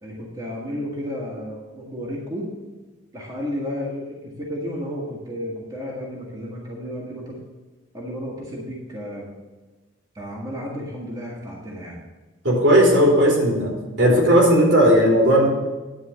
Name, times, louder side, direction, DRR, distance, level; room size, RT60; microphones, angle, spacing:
voice 1, 0.0-2.5 3.1-7.4 7.9-9.3 10.1-12.0, equal, 20° right, -5 dB, 1.8 m, -32 dB
voice 2, 12.4-13.7 14.0-15.5, equal, 70° right, -4 dB, 3.5 m, -16 dB
10.0 x 4.8 x 7.7 m, 1.2 s
head